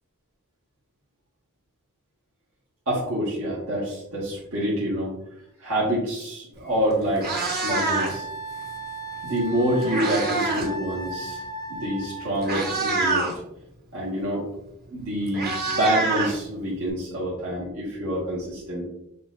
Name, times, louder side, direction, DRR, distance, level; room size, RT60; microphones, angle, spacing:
voice 1, 2.9-5.1 5.6-8.3 9.2-11.4 11.7-13.3 13.9-14.4 14.9-18.8, equal, 75° right, -8 dB, 1.4 m, -27 dB
Meow, 6.6-6.7 7.0-8.3 9.4-10.7 11.0-11.3 12.0-12.1 12.4-13.3 14.7-14.8 15.0-16.9, right 3 dB, 45° right, 1.1 m, -26 dB
Wind instrument woodwind instrument, 7.7-12.5, right 1 dB, 20° left, 0.4 m, -35 dB
6.7 x 2.7 x 2.4 m, 0.84 s
head